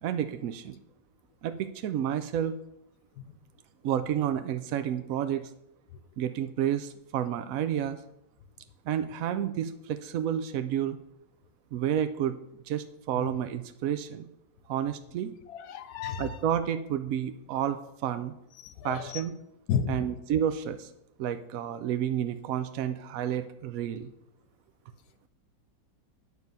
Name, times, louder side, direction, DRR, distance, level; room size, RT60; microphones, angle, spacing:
voice 1, 0.0-0.8 1.4-2.5 3.8-5.4 6.2-8.0 8.9-11.0 11.7-12.3 12.7-14.2 14.7-15.3 16.2-18.3 18.8-19.3 19.9-20.9 21.2-24.1, right 10 dB, 75° right, 10 dB, 0.7 m, -30 dB
voice 2, 15.7-16.3 18.6-19.2 19.7-19.9, left 8 dB, 70° left, 11 dB, 1.0 m, -31 dB
9.7 x 6.3 x 5.4 m, 0.83 s
omnidirectional pair, 2.0 m